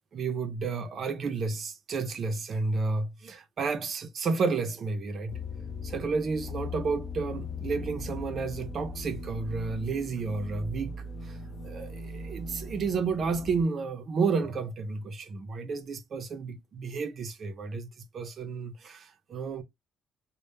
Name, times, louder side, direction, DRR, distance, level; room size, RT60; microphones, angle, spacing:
voice 1, 0.1-5.4 5.8-11.4 11.6-17.9 18.1-19.6, right 4 dB, 45° right, 0.4 m, -31 dB
sound 1, 5.3-13.6, left 2 dB, 55° left, 0.5 m, -39 dB
2.0 x 2.0 x 3.1 m
cardioid pair, 120°, 0 cm